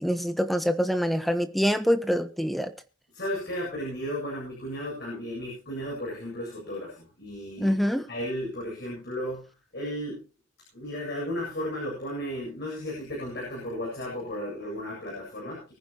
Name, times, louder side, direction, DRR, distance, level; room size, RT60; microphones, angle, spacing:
voice 1, 0.0-2.7 7.6-8.1, equal, ahead, 1.2 m, -25 dB
voice 2, 3.1-7.7 8.1-10.2 10.7-15.7, equal, 50° left, 7.8 m, -34 dB
24.0 x 10.5 x 3.1 m
head